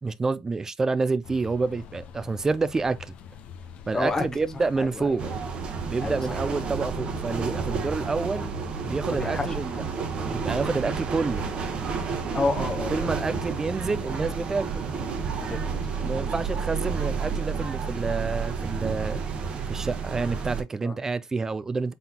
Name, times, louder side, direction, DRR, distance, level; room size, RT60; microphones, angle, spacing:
voice 1, 0.0-3.1 3.9-5.2 5.9-8.5 8.8-9.8 10.2-11.5 12.9-14.9 16.0-19.2 19.7-21.9, right 4 dB, 20° right, 0.5 m, -28 dB
sound 1, 1.2-19.5, left 7 dB, 55° left, 0.8 m, -44 dB
voice 2, 3.9-4.2 4.5-5.3 6.0-6.4 9.1-9.8 12.1-13.2 13.5-13.6 15.5-16.0 20.8-21.0, left 3 dB, 20° left, 0.9 m, -31 dB
sound 2, 5.2-20.6, right 6 dB, 40° right, 1.0 m, -30 dB
3.9 x 3.8 x 2.8 m
supercardioid pair, 90°, 3 cm